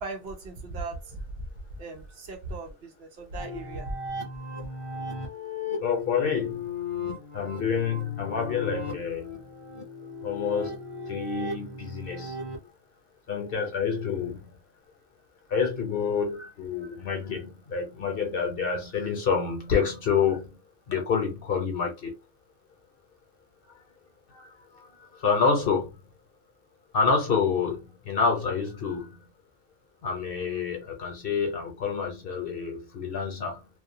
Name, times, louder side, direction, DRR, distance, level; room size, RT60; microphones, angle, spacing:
voice 1, 0.0-3.9, right 2 dB, 65° right, 0.8 m, -38 dB
sound 1, 3.4-12.6, left 3 dB, 30° left, 0.6 m, -37 dB
voice 2, 5.8-6.7 7.0-9.4 10.2-10.8 11.1-12.4 13.3-14.5 15.5-22.1 24.3-26.0 26.9-29.2 30.0-33.7, left 5 dB, 55° left, 0.9 m, -28 dB
2.4 x 2.3 x 2.6 m
omnidirectional pair, 1.2 m